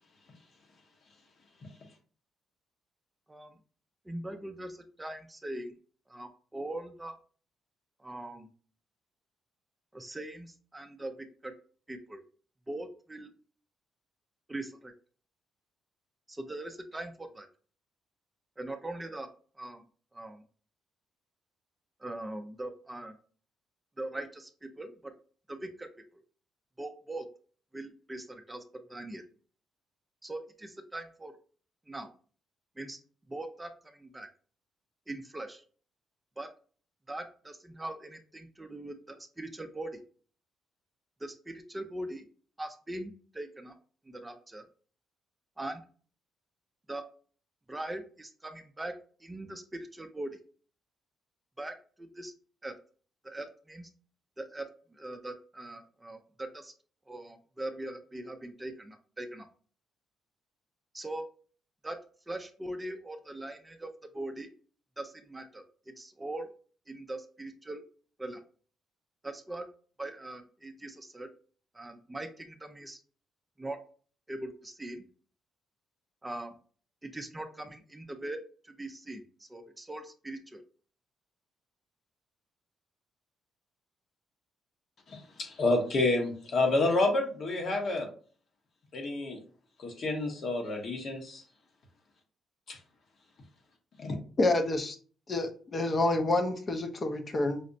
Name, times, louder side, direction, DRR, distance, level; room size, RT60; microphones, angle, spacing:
voice 1, 4.1-5.7 6.1-7.1 8.0-8.5 9.9-11.1 11.4-11.5 11.9-12.2 12.7-13.3 14.5-14.9 16.3-17.5 18.6-19.3 19.6-19.8 20.1-20.4 22.0-23.1 24.0-24.9 25.5-25.9 26.8-27.3 27.7-28.6 28.9-29.2 30.2-31.3 31.9-32.1 32.8-33.0 33.3-34.3 35.1-35.6 36.4-36.5 37.1-40.0 41.2-42.3 42.6-43.7 44.1-44.6 45.6-45.8 46.9-47.0 47.7-48.9 49.2-50.4 51.6-52.3 52.6-52.7 53.2-53.9 54.4-54.7 54.9-56.7 57.1-59.5 60.9-61.2 61.8-62.0 62.3-63.9 64.1-64.5 65.0-65.6 66.0-66.5 66.9-67.8 68.2-68.4 69.2-69.6 70.0-71.3 71.7-73.0 73.6-73.8 74.3-75.0 76.2-76.6 77.0-80.6, right 1 dB, 15° right, 7 dB, 0.4 m, -41 dB
voice 2, 85.1-88.1 88.9-89.4 89.8-91.4 92.7-92.8 94.0-94.2, left 2 dB, 55° left, 2 dB, 1.0 m, -29 dB
voice 3, 94.4-95.0 95.3-97.6, left 2 dB, 35° left, 6 dB, 0.6 m, -28 dB
5.0 x 2.0 x 2.6 m, 0.42 s
cardioid pair, 90°, 0 cm